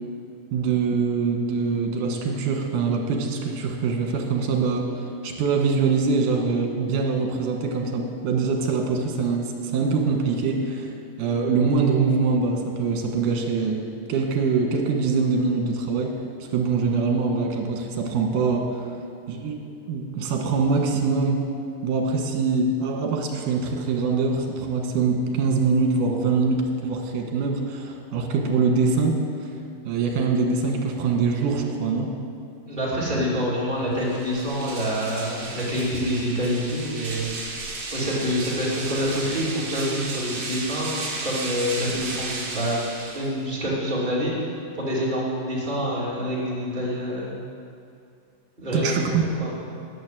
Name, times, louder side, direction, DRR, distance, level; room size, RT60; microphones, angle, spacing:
voice 1, 0.5-4.9 5.2-10.9 11.2-13.8 14.1-16.1 16.4-18.8 19.3-19.6 19.9-21.4 21.8-29.2 29.8-32.1 48.7-49.2, right 4 dB, 70° right, 2 dB, 2.9 m, -23 dB
voice 2, 32.6-37.3 37.9-42.8 43.1-47.4 48.6-49.5, equal, 15° right, -7 dB, 3.0 m, -27 dB
sound 1, 33.9-43.6, right 3 dB, 45° right, 2.2 m, -34 dB
10.5 x 9.1 x 7.6 m, 2.5 s
omnidirectional pair, 4.0 m